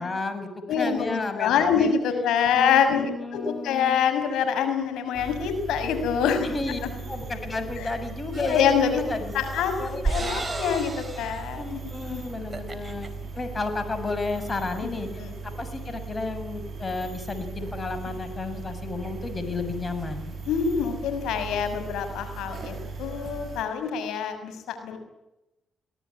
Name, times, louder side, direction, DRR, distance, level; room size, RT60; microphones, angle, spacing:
voice 1, 0.0-1.9 2.5-4.0 6.4-6.8 7.1-10.5 11.6-13.1 13.3-15.1 15.4-20.3, left 3 dB, 30° left, 9 dB, 6.8 m, -32 dB
voice 2, 0.7-6.5 7.8-7.9 8.3-9.0 9.3-12.2 15.2-15.4 20.5-22.7 23.0-25.0, left 7 dB, 85° left, 8 dB, 6.4 m, -25 dB
sound 1, 5.1-23.6, right 4 dB, 40° right, 6.5 m, -38 dB
sound 2, 8.3-8.8 9.3-11.5 11.9-12.1 12.4-13.1, right 3 dB, 20° right, 4.3 m, -33 dB
24.0 x 18.0 x 9.8 m, 0.92 s
cardioid pair, 70°, 0 cm